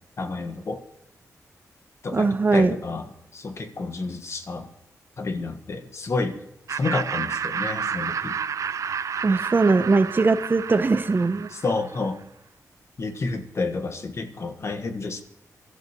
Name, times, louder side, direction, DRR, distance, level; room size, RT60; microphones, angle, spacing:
voice 1, 0.2-0.8 2.0-4.7 5.2-6.4 6.7-8.4 11.5-12.2 13.0-15.2, left 3 dB, 50° left, 8 dB, 1.4 m, -30 dB
voice 2, 2.1-2.7 9.2-11.5, right 3 dB, 35° right, 11 dB, 0.8 m, -20 dB
Laughter, 6.7-12.0, right 7 dB, 60° right, 0.4 m, -30 dB
24.0 x 13.0 x 3.0 m, 0.79 s
wide cardioid pair, 95°, 6 cm